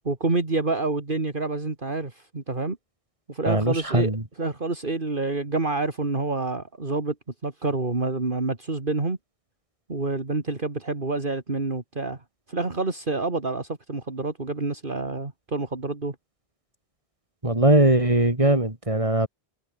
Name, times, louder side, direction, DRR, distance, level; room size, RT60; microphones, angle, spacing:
voice 1, 0.0-2.8 3.3-4.1 4.4-7.1 7.4-9.2 9.9-12.2 12.5-16.1, right 3 dB, 45° right, 2.7 m, -28 dB
voice 2, 3.5-4.2 17.4-19.3, right 1 dB, 30° right, 4.0 m, -20 dB
omnidirectional pair, 1.2 m